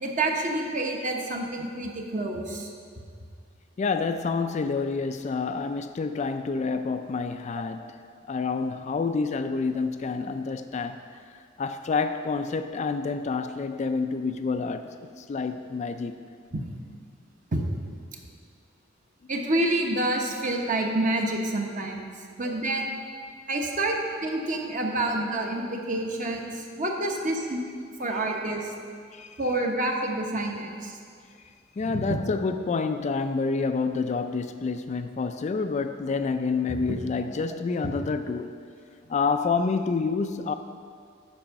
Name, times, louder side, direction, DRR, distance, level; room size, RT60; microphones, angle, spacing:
voice 1, 0.0-2.7 17.5-17.6 19.3-22.1 22.4-23.0 23.5-28.7 29.4-31.0 31.9-32.2 36.7-36.8, right 1 dB, 40° right, 1.0 m, -28 dB
voice 2, 3.8-8.0 8.2-11.2 11.6-16.2 27.2-27.3 28.1-28.4 29.1-29.7 31.8-38.5 39.1-40.5, left 4 dB, 35° left, 0.3 m, -28 dB
8.7 x 5.4 x 5.9 m
head